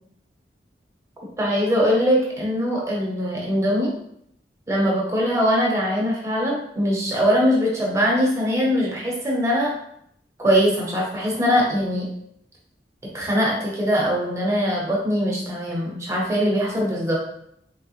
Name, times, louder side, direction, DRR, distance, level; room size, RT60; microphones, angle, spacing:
voice 1, 1.4-3.9 4.7-9.7 10.4-12.1 13.1-17.2, equal, 15° right, -3 dB, 0.9 m, -21 dB
4.0 x 3.2 x 3.1 m, 0.73 s
head